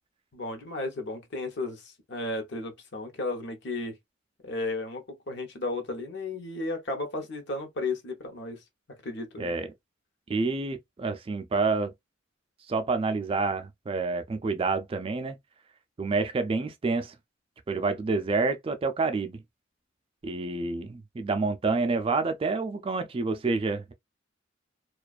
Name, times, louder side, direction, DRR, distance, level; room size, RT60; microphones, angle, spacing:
voice 1, 0.3-4.0 4.4-8.6 9.0-9.5, left 2 dB, 65° left, 0.8 m, -34 dB
voice 2, 10.3-11.9 12.7-15.4 16.0-17.1 17.7-19.4 20.2-23.9, right 3 dB, 30° right, 0.3 m, -28 dB
2.4 x 2.3 x 2.3 m
head